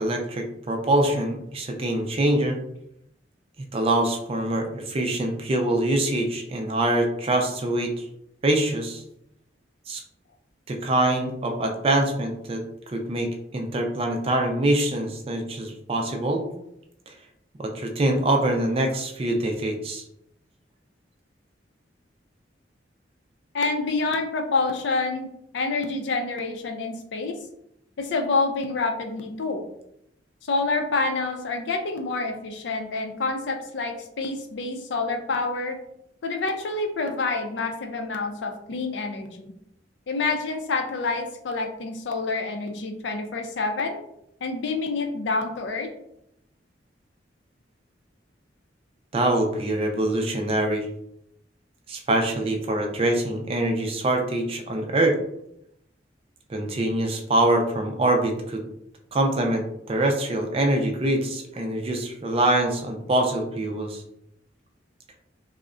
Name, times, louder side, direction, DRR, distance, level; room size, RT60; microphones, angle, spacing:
voice 1, 0.0-2.6 3.7-8.0 8.4-9.0 9.9-10.0 10.7-12.6 12.9-16.5 17.1-17.2 17.6-20.0 49.1-50.9 51.9-55.2 56.5-58.6 59.1-64.0, right 1 dB, 30° right, 3 dB, 0.4 m, -24 dB
voice 2, 23.5-25.3 25.5-27.4 28.0-29.6 30.4-35.8 36.2-39.5 40.1-44.0 44.4-45.9, left 3 dB, 70° left, 5 dB, 0.4 m, -27 dB
3.5 x 2.1 x 2.4 m, 0.77 s
head